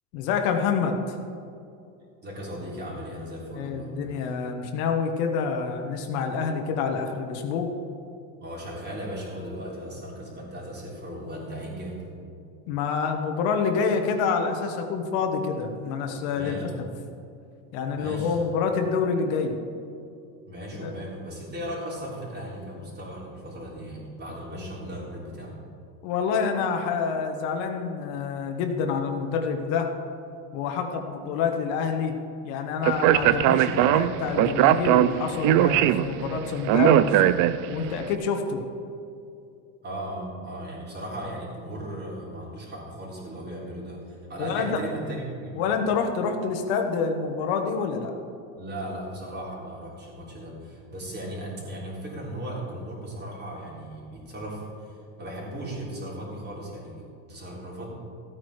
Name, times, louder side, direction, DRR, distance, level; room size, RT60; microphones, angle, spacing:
voice 1, 0.1-1.2 3.6-7.7 12.7-16.6 17.7-19.6 20.8-20.9 26.0-29.9 30.5-32.2 32.4-37.2 37.7-38.7 44.4-44.8 45.5-48.1, left 5 dB, 70° left, 4 dB, 1.5 m, -27 dB
voice 2, 2.2-4.0 8.3-12.0 16.3-16.7 17.9-18.3 20.4-25.6 39.8-45.7 48.6-57.9, right 1 dB, 25° right, -4 dB, 3.6 m, -37 dB
Speech, 32.8-37.9, right 12 dB, 50° right, 0.5 m, -20 dB
15.0 x 8.9 x 4.9 m, 2.5 s
supercardioid pair, 140°, 42 cm